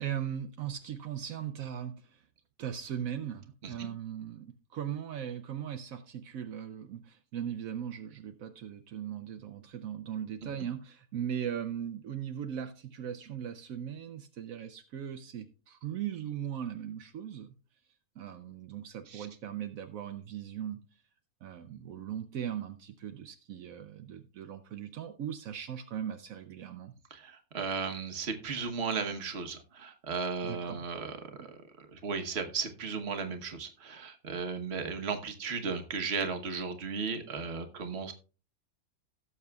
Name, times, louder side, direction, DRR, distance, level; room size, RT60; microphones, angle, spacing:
voice 1, 0.0-2.2 2.6-17.5 18.2-20.8 21.4-26.9 30.4-30.9 31.4-31.5, right 9 dB, 75° right, 7 dB, 1.1 m, -39 dB
voice 2, 27.1-38.1, right 5 dB, 50° right, 6 dB, 1.3 m, -35 dB
17.0 x 6.9 x 2.3 m, 0.36 s
omnidirectional pair, 1.5 m